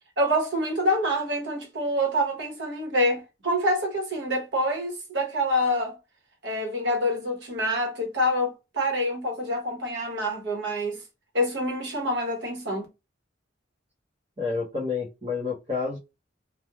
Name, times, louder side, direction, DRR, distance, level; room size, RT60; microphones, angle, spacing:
voice 1, 0.2-6.0 6.4-11.0 11.3-12.9, equal, 65° right, 1.1 m, -26 dB
voice 2, 14.4-16.0, left 4 dB, 30° right, 0.8 m, -29 dB
3.0 x 2.2 x 2.3 m
head